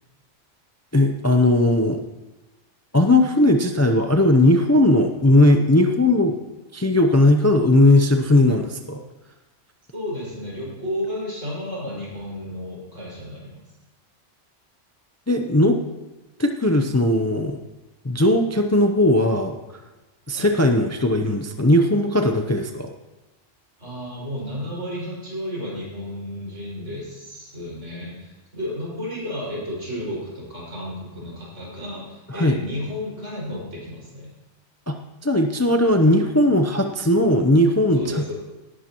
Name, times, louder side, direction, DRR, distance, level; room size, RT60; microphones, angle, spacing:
voice 1, 0.9-2.0 2.9-6.4 6.7-9.0 15.3-15.8 16.4-17.6 18.0-19.6 20.3-22.9 32.3-32.6 34.9-35.0 35.2-38.3, left 1 dB, 20° left, 5 dB, 0.5 m, -18 dB
voice 2, 9.9-13.6 20.3-20.5 23.8-34.3 37.9-38.3, left 1 dB, 80° right, -6 dB, 5.8 m, -32 dB
18.0 x 11.5 x 3.0 m, 1.1 s
omnidirectional pair, 1.2 m